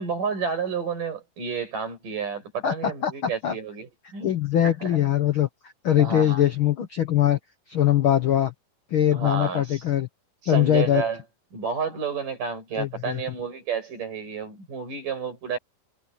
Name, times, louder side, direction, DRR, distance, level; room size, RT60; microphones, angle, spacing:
voice 1, 0.0-4.4 4.6-5.0 6.0-6.4 9.1-9.8 10.4-11.2 11.5-15.6, right 6 dB, 75° right, 8.8 m, -30 dB
voice 2, 2.6-3.5 4.2-5.5 5.8-7.4 7.7-8.5 8.9-10.1 10.4-11.0 12.8-13.2, left 11 dB, 70° left, 1.3 m, -22 dB
omnidirectional pair, 3.8 m